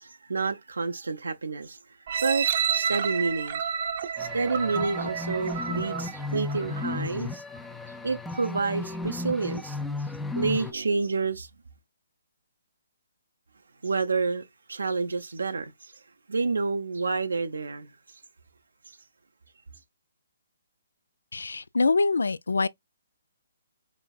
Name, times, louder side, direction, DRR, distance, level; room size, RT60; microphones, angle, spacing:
voice 1, 0.0-1.8 2.2-3.7 4.2-7.4 8.0-11.5 13.8-15.9 16.3-17.9, right 4 dB, 85° right, 0.7 m, -29 dB
sound 1, 2.1-7.0 7.6-7.7, right 7 dB, 50° right, 0.7 m, -30 dB
sound 2, 4.2-10.7, left 3 dB, 5° left, 0.5 m, -34 dB
voice 2, 21.3-22.7, left 3 dB, 85° left, 0.3 m, -24 dB
5.1 x 3.4 x 2.4 m
hypercardioid pair, 145°, 0 cm